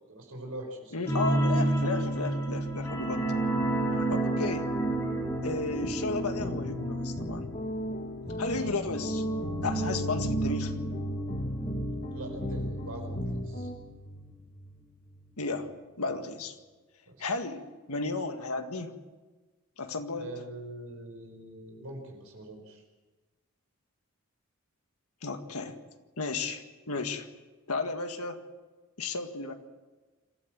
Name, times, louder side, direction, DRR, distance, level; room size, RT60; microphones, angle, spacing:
voice 1, 0.0-0.9 2.3-2.5 8.2-8.6 12.1-13.2 13.4-13.7 17.1-17.3 20.1-22.8, right 1 dB, 75° right, 3 dB, 5.2 m, -43 dB
voice 2, 0.9-3.2 3.9-4.7 5.4-7.5 8.4-9.2 9.6-10.8 15.4-15.7 16.0-16.5 17.2-18.9 19.8-20.3 25.2-25.8 26.2-27.3 27.7-28.4 29.0-29.5, left 3 dB, 85° left, 6 dB, 1.9 m, -34 dB
sound 1, 1.1-14.3 14.6-14.8 15.2-15.3, right 1 dB, 15° left, 4.9 m, -31 dB
sound 2, 5.8-13.7, equal, 35° left, 1.6 m, -36 dB
27.0 x 13.0 x 7.7 m, 1.3 s
head